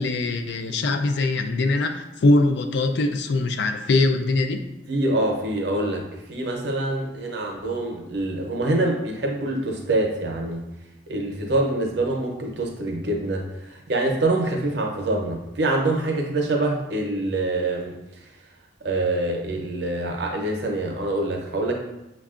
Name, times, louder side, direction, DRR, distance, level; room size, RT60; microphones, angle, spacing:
voice 1, 0.0-4.7, left 2 dB, 70° left, 7 dB, 0.4 m, -22 dB
voice 2, 4.9-10.7 11.1-18.0 18.8-21.7, right 2 dB, 65° right, 1 dB, 0.7 m, -25 dB
6.1 x 2.3 x 2.4 m, 0.96 s
head